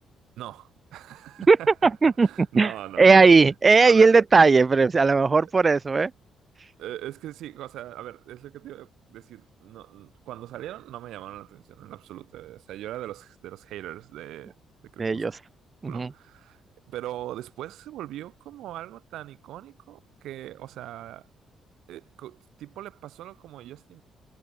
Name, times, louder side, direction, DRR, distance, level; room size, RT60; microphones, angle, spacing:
voice 1, 0.4-3.2 3.8-4.1 6.8-14.5 14.8-15.3 15.9-16.6 16.9-21.3 21.9-24.0, right 13 dB, 85° right, 5.8 m, -40 dB
voice 2, 1.8-2.3 2.5-2.7 3.0-6.1 15.0-15.3 15.8-16.1, right 4 dB, 30° right, 1.1 m, -17 dB
cardioid pair, 90°, 0 cm